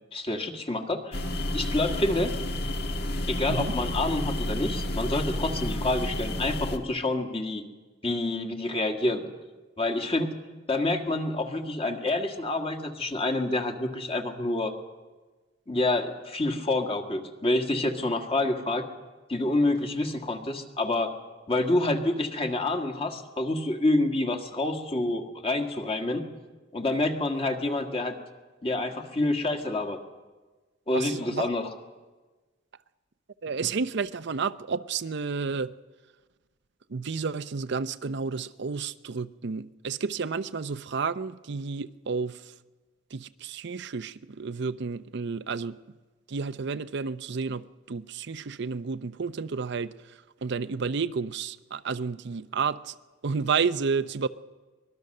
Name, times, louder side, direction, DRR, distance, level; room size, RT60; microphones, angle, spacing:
voice 1, 0.1-1.2 1.5-2.3 3.3-7.6 8.0-9.2 9.8-10.3 10.7-14.7 15.7-18.9 19.3-21.1 21.5-26.2 26.7-28.2 28.6-30.0 30.9-31.7, left 2 dB, 30° left, 1.8 m, -27 dB
sound 1, 1.1-6.8, left 1 dB, 60° left, 1.6 m, -31 dB
voice 2, 30.9-31.5 33.4-35.7 36.9-42.5 43.1-45.8 46.3-49.9 50.4-52.9 53.2-54.3, right 5 dB, 65° right, 0.6 m, -31 dB
24.0 x 20.5 x 6.6 m
head